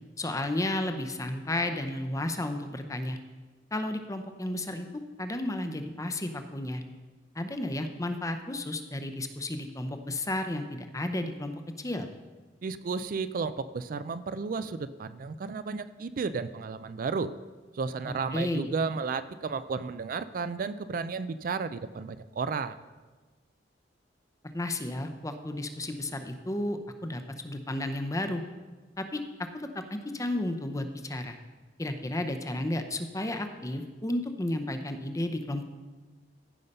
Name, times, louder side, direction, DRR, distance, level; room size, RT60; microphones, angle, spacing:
voice 1, 0.2-3.2 3.7-6.8 7.3-12.1 18.3-18.7 24.5-28.4 29.0-31.4 31.8-35.6, left 1 dB, 20° left, 7 dB, 0.7 m, -33 dB
voice 2, 12.6-17.3 17.7-22.8, right 4 dB, 50° right, 13 dB, 0.4 m, -33 dB
15.0 x 5.6 x 5.4 m, 1.3 s
head